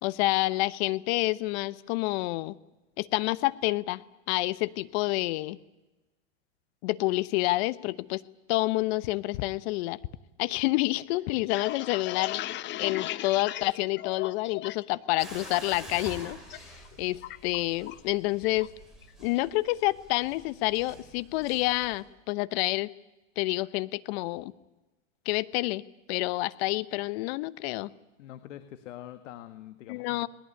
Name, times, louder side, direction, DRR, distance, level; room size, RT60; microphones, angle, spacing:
voice 1, 0.0-2.6 3.0-4.0 4.3-5.6 6.8-8.2 8.5-10.0 10.4-12.4 12.8-18.7 19.2-22.9 23.4-24.5 25.2-25.8 26.1-27.9 29.9-30.3, left 19 dB, 55° left, 18 dB, 1.0 m, -28 dB
sound 1, 11.2-14.9 15.2-15.8 16.2-16.6 16.8-18.1 18.4-18.7 19.0-19.5, left 15 dB, 30° left, 0.7 m, -37 dB
sound 2, 15.2-22.0, right 1 dB, ahead, 7.4 m, -48 dB
voice 2, 28.2-30.3, left 12 dB, 70° left, 10 dB, 1.7 m, -45 dB
20.5 x 19.5 x 9.9 m, 1.1 s
hypercardioid pair, 120°, 38 cm